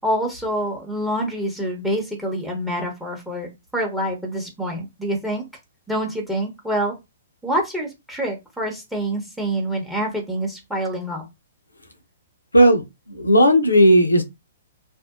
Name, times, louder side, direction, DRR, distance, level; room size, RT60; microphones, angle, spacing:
voice 1, 0.0-3.5 3.7-5.4 5.9-7.0 7.4-11.2, right 1 dB, 5° right, 0.7 m, -26 dB
voice 2, 13.1-14.2, equal, 90° left, 0.6 m, -14 dB
2.6 x 2.1 x 2.3 m
figure-of-eight pair, 120°, 0 cm